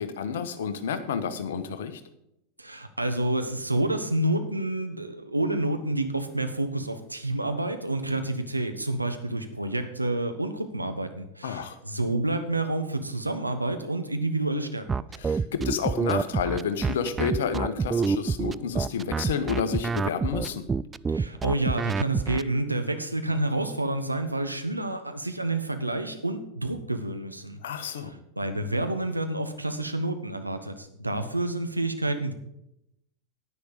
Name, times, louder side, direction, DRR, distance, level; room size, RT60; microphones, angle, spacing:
voice 1, 0.0-2.0 11.4-11.8 15.2-20.6 27.6-28.1, left 6 dB, 60° left, 11 dB, 1.2 m, -30 dB
voice 2, 2.6-15.0 21.1-32.3, right 2 dB, 85° right, 7 dB, 1.2 m, -29 dB
sound 1, 14.9-22.4, right 5 dB, 15° right, 0.3 m, -27 dB
9.9 x 9.9 x 5.0 m, 0.81 s
figure-of-eight pair, 90°, 0 cm